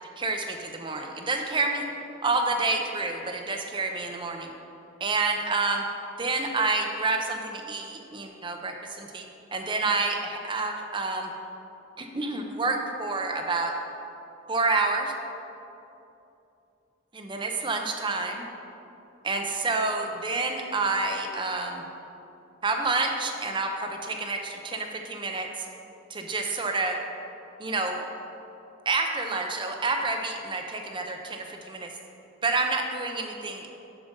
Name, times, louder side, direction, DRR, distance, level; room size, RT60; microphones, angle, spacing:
voice 1, 0.2-1.8 2.2-4.5 5.0-5.8 6.2-9.3 9.5-11.3 12.0-13.7 14.5-15.1 17.1-18.4 19.2-21.8 22.6-25.5 26.1-27.0 27.6-28.0 28.9-31.9 32.4-33.7, right 3 dB, 25° right, 4 dB, 0.6 m, -28 dB
7.1 x 6.7 x 5.3 m, 2.8 s
head